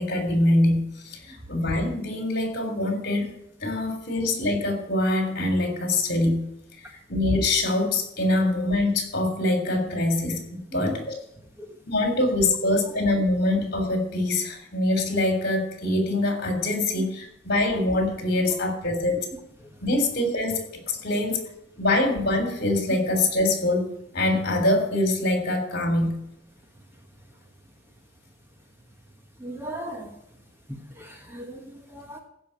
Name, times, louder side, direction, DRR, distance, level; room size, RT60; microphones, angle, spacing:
voice 1, 0.0-3.3 3.6-6.4 6.8-11.1 11.9-19.2 19.8-21.4 21.8-26.2, left 2 dB, 50° left, 5 dB, 3.4 m, -24 dB
voice 2, 29.4-30.2 30.7-32.2, right 1 dB, 10° right, 3 dB, 1.3 m, -37 dB
15.5 x 5.6 x 8.8 m, 0.77 s
head